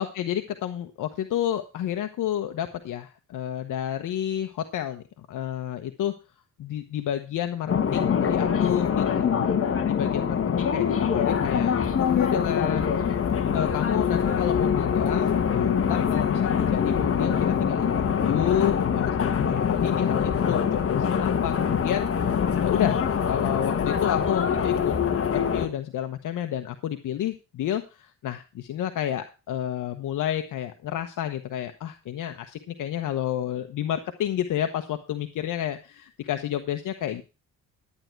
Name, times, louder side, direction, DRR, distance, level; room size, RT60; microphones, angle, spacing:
voice 1, 0.0-6.1 6.6-13.0 13.5-23.0 23.3-25.0 25.2-37.2, left 11 dB, 70° left, 8 dB, 1.1 m, -30 dB
sound 1, 7.7-25.7, left 7 dB, 45° left, 1.5 m, -24 dB
12.0 x 9.4 x 4.6 m, 0.31 s
cardioid pair, 120°, 32 cm